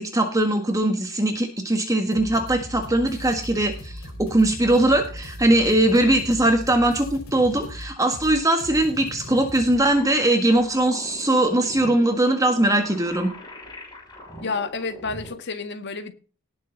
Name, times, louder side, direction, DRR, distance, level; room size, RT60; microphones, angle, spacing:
voice 1, 0.0-13.3, right 1 dB, 15° right, 1.6 m, -21 dB
sound 1, 2.1-9.8, left 1 dB, 90° left, 5.0 m, -38 dB
sound 2, 9.7-15.4, equal, 20° left, 6.0 m, -41 dB
voice 2, 14.4-16.1, left 4 dB, 55° left, 1.8 m, -30 dB
18.5 x 6.7 x 4.0 m
head